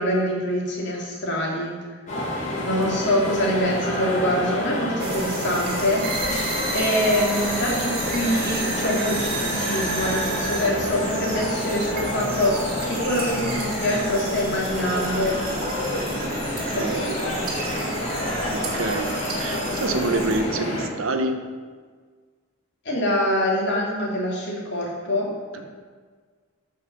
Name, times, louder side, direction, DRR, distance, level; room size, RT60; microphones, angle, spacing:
voice 1, 0.0-1.7 2.6-6.0 6.7-15.4 16.7-17.4 22.8-25.6, equal, 50° left, -3 dB, 2.8 m, -25 dB
sound 1, 2.1-20.9, left 1 dB, 35° left, 2.2 m, -28 dB
sound 2, 5.0-20.4, right 3 dB, 40° right, 2.2 m, -32 dB
voice 2, 16.7-17.1 18.5-21.4, right 2 dB, 70° right, 7 dB, 1.0 m, -27 dB
13.0 x 5.6 x 6.3 m, 1.5 s
head